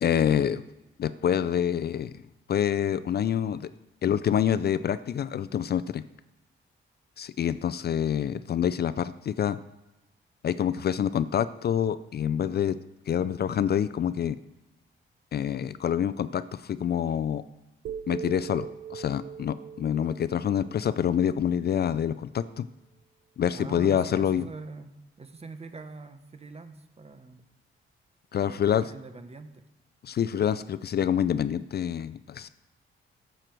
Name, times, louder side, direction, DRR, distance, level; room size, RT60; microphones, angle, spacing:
voice 1, 0.0-0.6 1.0-2.1 2.5-3.7 4.0-6.0 7.2-9.6 10.4-12.8 13.1-14.4 15.3-17.4 18.1-22.7 23.4-24.4 28.3-28.8 30.0-32.5, left 9 dB, 50° left, 14 dB, 0.4 m, -26 dB
sound 1, 17.8-21.9, right 7 dB, 85° right, 0.7 m, -41 dB
voice 2, 23.5-27.5 28.4-29.6, right 3 dB, 30° right, 9 dB, 1.0 m, -43 dB
11.5 x 7.6 x 4.6 m, 1.0 s
cardioid pair, 90°, 21 cm